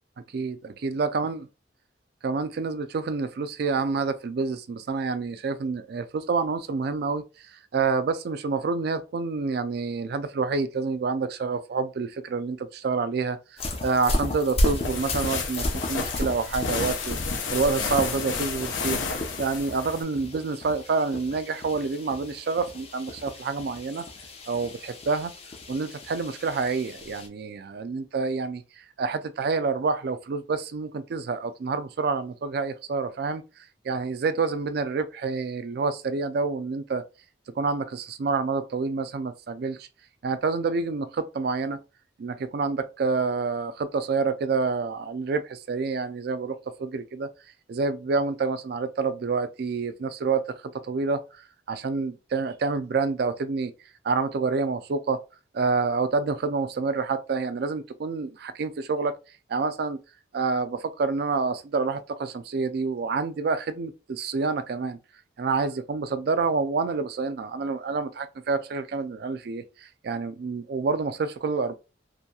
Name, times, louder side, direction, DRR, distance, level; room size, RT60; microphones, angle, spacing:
voice 1, 0.3-1.4 2.2-24.1 24.5-25.3 25.7-33.4 33.8-37.0 37.6-39.9 40.2-41.8 42.2-47.3 47.7-53.7 54.0-55.2 55.5-59.1 59.5-60.0 60.3-65.0 65.4-71.7, right 4 dB, 55° right, 0.3 m, -28 dB
sound 1, 13.6-27.3, left 1 dB, 35° left, 0.5 m, -34 dB
sound 2, 14.6-20.0, left 4 dB, 85° left, 0.6 m, -31 dB
2.8 x 2.6 x 2.2 m
head